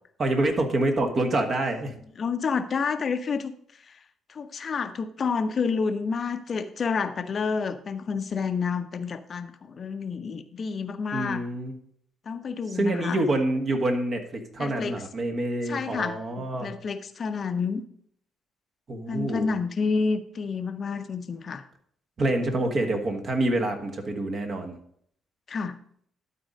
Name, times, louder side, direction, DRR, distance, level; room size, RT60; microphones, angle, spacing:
voice 1, 0.2-1.9 11.1-11.7 12.7-16.7 18.9-19.5 22.2-24.7, right 2 dB, 45° right, 4 dB, 1.6 m, -26 dB
voice 2, 2.2-3.5 3.9-4.0 4.3-11.4 12.3-13.2 14.6-15.0 15.7-17.8 19.1-21.6 25.5-25.8, left 5 dB, 45° left, 10 dB, 0.6 m, -29 dB
12.0 x 4.4 x 5.2 m, 0.65 s
figure-of-eight pair, 45°, 0 cm